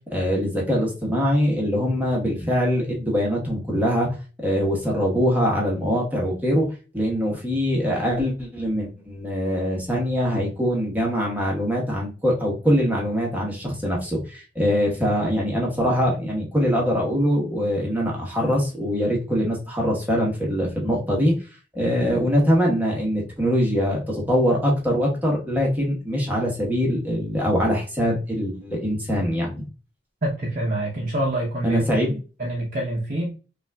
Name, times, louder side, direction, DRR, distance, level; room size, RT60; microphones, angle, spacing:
voice 1, 0.1-4.1 4.4-6.7 6.9-21.3 21.7-29.6 31.6-32.2, equal, 10° right, 1.1 m, -23 dB
voice 2, 30.2-31.8 32.4-33.3, right 1 dB, 45° right, 0.7 m, -26 dB
5.3 x 2.5 x 2.2 m
head